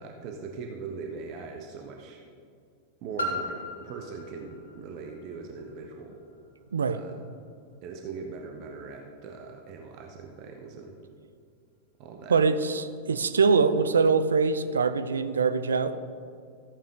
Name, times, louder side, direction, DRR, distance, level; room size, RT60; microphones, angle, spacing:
voice 1, 0.0-2.2 3.0-6.2 6.9-7.2 7.8-11.0 12.0-12.4, right 4 dB, 40° right, 2 dB, 1.0 m, -40 dB
Piano, 3.2-8.6 9.3-9.4, equal, 70° left, 1.5 m, -39 dB
voice 2, 12.3-16.0, right 4 dB, 70° right, 12 dB, 0.5 m, -23 dB
14.0 x 8.9 x 3.7 m, 2.3 s
figure-of-eight pair, 90°, 0 cm